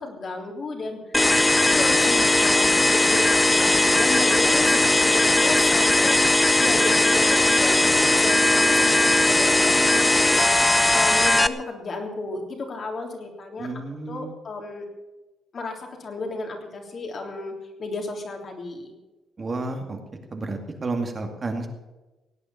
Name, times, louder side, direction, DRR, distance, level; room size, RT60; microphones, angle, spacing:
voice 1, 0.0-1.2 1.6-6.2 6.6-10.5 10.9-14.9 15.5-18.9, left 3 dB, 45° left, 2 dB, 3.4 m, -33 dB
sound 1, 1.1-11.5, left 2 dB, 15° left, 0.7 m, -19 dB
voice 2, 13.6-14.3 19.4-20.0 20.3-21.7, right 3 dB, 35° right, 4 dB, 2.3 m, -31 dB
17.5 x 8.8 x 7.2 m, 1.1 s
cardioid pair, 90°, 0 cm